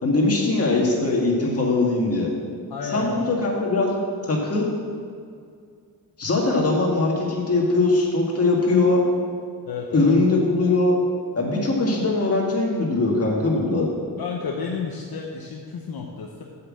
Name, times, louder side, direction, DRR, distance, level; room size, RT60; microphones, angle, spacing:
voice 1, 0.0-2.3 2.9-4.0 4.3-4.7 6.2-9.0 9.9-11.0 11.4-13.9, left 2 dB, 35° left, -2 dB, 1.8 m, -21 dB
voice 2, 2.7-3.5 9.7-10.1 14.2-16.4, left 5 dB, 65° left, 0 dB, 0.9 m, -32 dB
7.8 x 5.9 x 7.5 m, 2.2 s
wide cardioid pair, 155°, 39 cm